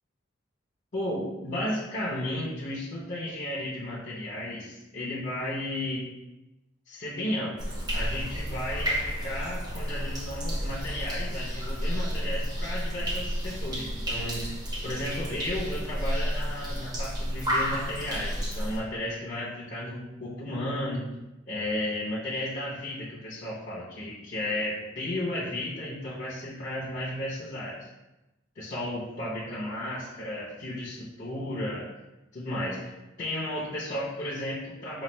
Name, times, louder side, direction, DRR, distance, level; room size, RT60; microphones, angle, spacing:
voice 1, 0.9-6.1 6.9-7.6 7.9-14.4 14.8-21.0 21.5-27.9 28.6-31.9 32.3-32.8 33.2-35.0, left 1 dB, 40° left, -8 dB, 0.7 m, -33 dB
sound 1, 7.6-18.8, equal, 20° right, 0.6 m, -31 dB
3.1 x 2.3 x 4.3 m, 0.98 s
head